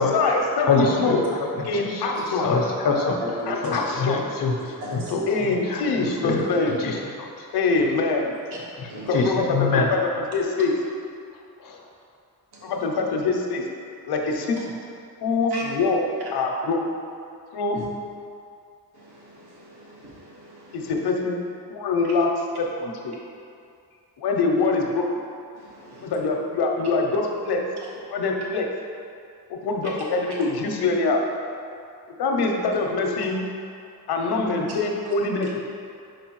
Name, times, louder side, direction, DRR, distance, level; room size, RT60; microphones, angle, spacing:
voice 1, 0.0-1.2 1.7-2.5 3.5-4.3 5.3-6.9 7.5-8.4 8.9-9.4 9.7-10.0 10.3-10.7 12.6-13.6 14.1-14.6 15.2-16.1 16.3-16.8 17.5-17.8 20.7-21.4 21.7-22.3 22.6-23.1 24.2-25.0 26.0-27.6 28.1-28.7 29.5-31.2 32.2-33.4 34.1-35.6, left 3 dB, 85° left, 1 dB, 0.9 m, -24 dB
voice 2, 0.6-3.2 3.6-5.2 5.5-6.5 6.8-7.5 8.8-9.9 11.6-11.9, left 4 dB, 60° left, 1 dB, 0.9 m, -25 dB
voice 3, 3.2-3.8 4.8-5.1 7.7-7.8 8.9-9.2 12.5-12.7 15.5-15.6 17.7-17.8 18.9-20.9 25.5-26.1 35.1-35.2, equal, 85° right, -4 dB, 1.5 m, -38 dB
5.0 x 4.8 x 4.7 m, 2.5 s
wide cardioid pair, 155°, 38 cm